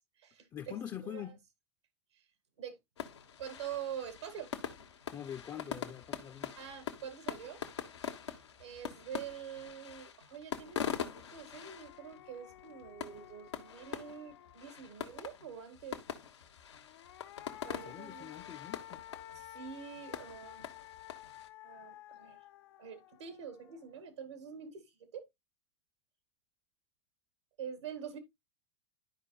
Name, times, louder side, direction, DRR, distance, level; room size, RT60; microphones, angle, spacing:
voice 1, 0.5-1.4 5.1-6.5 17.8-19.0, left 9 dB, 25° left, 0.6 m, -44 dB
sound 1, 3.0-21.5, left 8 dB, 85° left, 1.2 m, -44 dB
voice 2, 3.4-4.5 6.6-7.6 8.2-16.0 17.6-18.3 19.4-20.7 21.6-22.4 22.8-25.2 27.6-28.2, right 8 dB, 85° right, 1.9 m, -45 dB
sound 2, 10.9-11.0 11.4-15.1 16.7-24.0, left 15 dB, 65° left, 0.6 m, -53 dB
12.0 x 4.9 x 2.3 m
hypercardioid pair, 95°, 14 cm